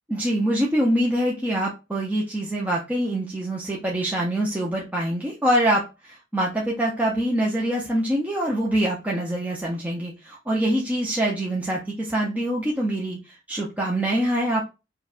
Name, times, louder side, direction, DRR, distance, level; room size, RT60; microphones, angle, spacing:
voice 1, 0.1-14.7, right 1 dB, 10° right, -4 dB, 0.6 m, -25 dB
4.5 x 2.3 x 2.4 m, 0.27 s
head